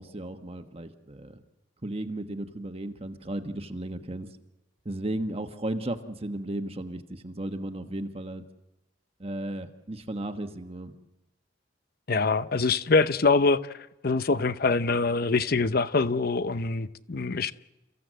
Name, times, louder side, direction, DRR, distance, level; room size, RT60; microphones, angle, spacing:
voice 1, 0.0-1.4 1.8-4.3 4.8-8.4 9.2-10.9, right 1 dB, 35° right, 1.3 m, -35 dB
voice 2, 12.1-17.5, left 4 dB, 55° left, 0.8 m, -24 dB
29.5 x 15.5 x 7.6 m
head